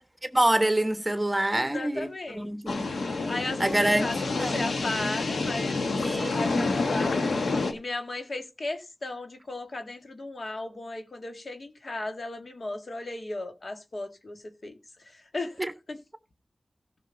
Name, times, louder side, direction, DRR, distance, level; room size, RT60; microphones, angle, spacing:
voice 1, 0.3-2.1 2.3-2.9 3.6-4.1 4.4-4.6 6.0-6.7 15.6-15.7, right 1 dB, 20° right, 1.2 m, -26 dB
voice 2, 1.5-2.5 3.3-6.0 6.3-7.2 7.7-14.7 15.1-15.6 15.9-16.0, left 2 dB, 55° left, 1.9 m, -36 dB
sound 1, 2.7-7.7, left 3 dB, 85° left, 1.3 m, -28 dB
16.0 x 6.2 x 4.0 m
cardioid pair, 50°, 0 cm